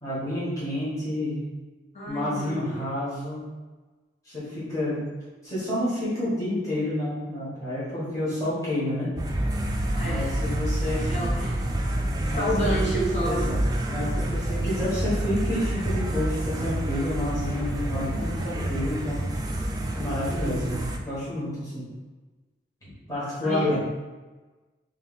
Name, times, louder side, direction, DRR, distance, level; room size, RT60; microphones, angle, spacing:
voice 1, 0.0-1.5 2.1-3.5 4.2-5.0 5.4-9.1 10.0-11.2 12.3-12.8 13.2-19.3 19.9-21.8 22.8-23.8, left 1 dB, 20° left, -10 dB, 1.3 m, -30 dB
voice 2, 1.9-2.9 10.0-10.3 11.1-11.5 12.3-13.4 20.4-20.9 23.4-23.7, equal, 35° left, -5 dB, 1.0 m, -29 dB
sound 1, 9.1-21.0, right 1 dB, 20° right, 0.3 m, -28 dB
3.2 x 2.7 x 4.0 m, 1.2 s
head